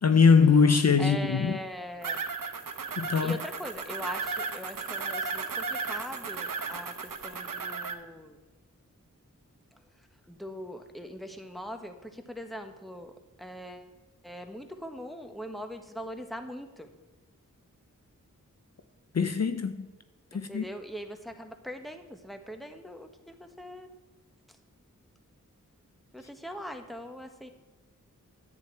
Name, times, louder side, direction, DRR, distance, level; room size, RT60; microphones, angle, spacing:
voice 1, 0.0-1.5 3.0-3.4 19.1-19.9 20.3-20.6, left 5 dB, 55° left, 0.6 m, -22 dB
voice 2, 1.0-2.3 3.2-8.4 10.3-13.1 13.4-13.9 14.2-16.9 20.3-23.9 26.1-27.5, equal, ahead, 1.2 m, -41 dB
sound 1, 2.0-7.9, right 4 dB, 90° right, 0.8 m, -35 dB
10.5 x 8.8 x 4.5 m
wide cardioid pair, 55°, 32 cm